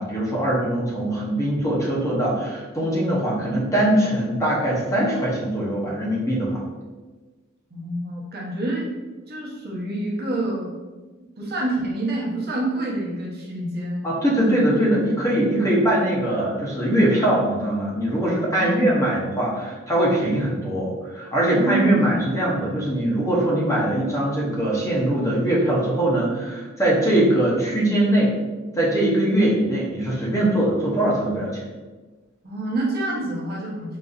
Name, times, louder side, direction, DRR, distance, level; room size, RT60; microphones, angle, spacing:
voice 1, 0.0-6.6 14.0-28.3 28.8-31.6, right 1 dB, 15° left, -5 dB, 0.8 m, -22 dB
voice 2, 7.7-8.9 9.3-10.7 11.4-14.0 18.6-18.8 21.5-22.4 32.4-34.0, right 2 dB, 50° right, -4 dB, 0.9 m, -27 dB
4.0 x 2.6 x 2.4 m, 1.3 s
head